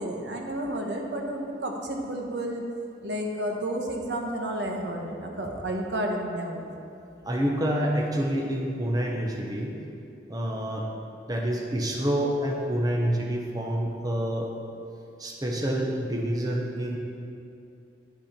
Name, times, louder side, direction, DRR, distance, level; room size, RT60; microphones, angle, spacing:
voice 1, 0.0-2.7 3.0-6.7, right 1 dB, 75° right, 1 dB, 1.1 m, -31 dB
voice 2, 7.2-9.8 10.3-10.9 11.3-14.5 15.2-17.0, equal, 20° right, -1 dB, 0.9 m, -27 dB
10.5 x 8.0 x 4.4 m, 2.6 s
head